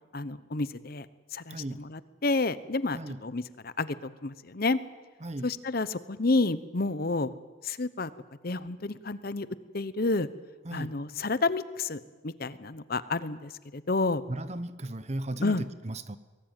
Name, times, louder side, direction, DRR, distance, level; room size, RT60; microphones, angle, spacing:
voice 1, 0.1-1.1 1.3-4.8 5.4-7.3 7.6-8.1 8.4-9.5 9.7-10.3 10.7-14.2 15.4-15.6, left 3 dB, 50° left, 0.9 m, -30 dB
voice 2, 1.5-1.8 2.9-3.2 5.2-5.5 10.6-10.9 14.3-16.2, right 1 dB, 35° right, 0.9 m, -36 dB
23.0 x 18.5 x 9.1 m
head